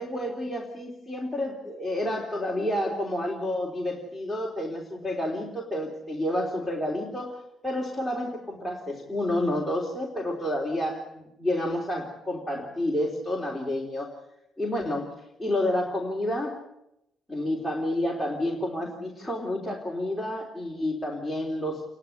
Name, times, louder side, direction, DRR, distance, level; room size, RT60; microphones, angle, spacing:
voice 1, 0.0-14.1 14.6-15.1 15.4-16.6 17.3-21.8, left 1 dB, ahead, 0 dB, 3.4 m, -30 dB
28.5 x 11.5 x 9.7 m, 0.83 s
cardioid pair, 115°, 0 cm